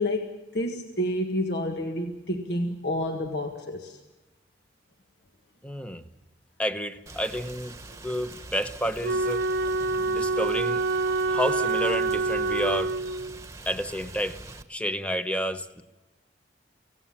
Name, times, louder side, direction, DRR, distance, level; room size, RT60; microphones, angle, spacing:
voice 1, 0.0-4.0, left 1 dB, 60° left, 4 dB, 1.7 m, -29 dB
voice 2, 5.6-6.0 6.6-7.7 8.0-9.5 10.1-10.8 11.3-12.9 13.7-14.4 14.7-15.8, equal, 5° left, 9 dB, 1.0 m, -30 dB
Rain, 7.1-14.6, right 2 dB, 15° right, 1.3 m, -44 dB
Wind instrument woodwind instrument, 9.0-13.4, right 3 dB, 70° right, 0.7 m, -26 dB
25.0 x 17.5 x 7.2 m, 1.1 s
head